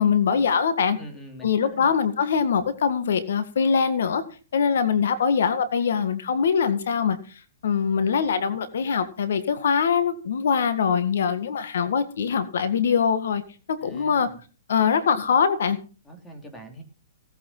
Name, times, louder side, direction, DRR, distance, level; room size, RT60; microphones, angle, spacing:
voice 1, 0.0-1.0 1.4-4.2 4.5-7.2 7.6-13.4 13.7-14.3 14.7-15.8, left 6 dB, 75° left, 11 dB, 1.8 m, -23 dB
voice 2, 1.0-1.9 13.8-14.4 16.0-16.8, equal, 10° left, 3 dB, 3.0 m, -43 dB
17.5 x 8.9 x 5.6 m, 0.37 s
hypercardioid pair, 155°, 0 cm